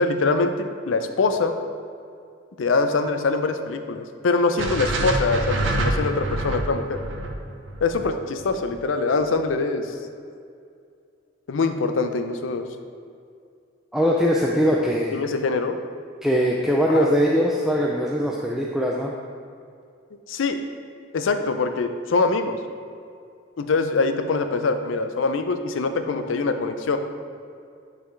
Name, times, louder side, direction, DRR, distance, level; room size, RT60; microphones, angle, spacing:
voice 1, 0.0-1.5 2.6-7.0 7.8-9.9 11.5-12.6 15.1-15.8 16.9-17.1 20.3-20.6 21.1-22.6 23.6-27.0, left 3 dB, 90° left, 8 dB, 0.5 m, -23 dB
sound 1, 4.6-8.8, right 1 dB, 75° right, 0.7 m, -26 dB
voice 2, 13.9-15.2 16.2-19.1, equal, ahead, -2 dB, 0.3 m, -21 dB
9.6 x 4.0 x 3.2 m, 2.3 s
head